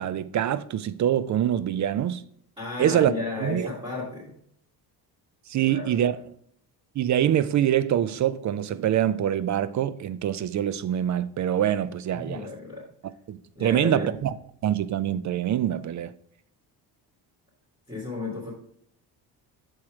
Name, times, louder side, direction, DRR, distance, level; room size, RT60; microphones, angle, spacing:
voice 1, 0.0-2.2 2.8-3.1 3.4-3.7 5.5-6.2 7.0-12.5 13.3-14.3 14.6-16.1, right 10 dB, 45° right, 0.4 m, -25 dB
voice 2, 2.6-4.3 5.6-6.1 12.1-12.8 13.5-14.1 17.9-18.5, left 3 dB, 10° right, 2.5 m, -34 dB
6.4 x 4.2 x 4.9 m
cardioid pair, 85°, 43 cm